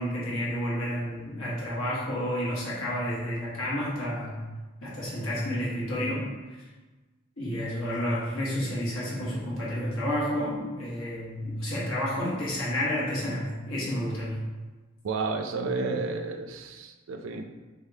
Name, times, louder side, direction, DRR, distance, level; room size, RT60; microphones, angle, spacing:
voice 1, 0.0-4.4 4.8-6.3 7.4-14.4, equal, 75° left, -6 dB, 1.2 m, -30 dB
voice 2, 15.0-17.5, right 3 dB, 70° right, 5 dB, 0.4 m, -31 dB
3.5 x 3.4 x 2.7 m, 1.3 s
head